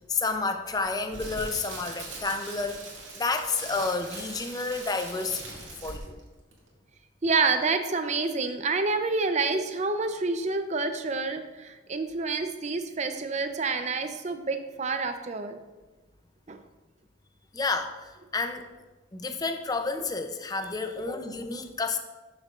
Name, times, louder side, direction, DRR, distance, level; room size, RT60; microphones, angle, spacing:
voice 1, 0.1-2.8 3.1-6.2 17.5-18.7 19.1-22.0, left 3 dB, 20° left, 6 dB, 0.5 m, -30 dB
Crackle, 0.8-6.2 6.5-6.7, right 3 dB, 70° right, 2.1 m, -41 dB
voice 2, 7.2-15.6 16.5-16.6, right 4 dB, 35° right, 8 dB, 0.6 m, -28 dB
12.0 x 6.6 x 2.5 m, 1.2 s
head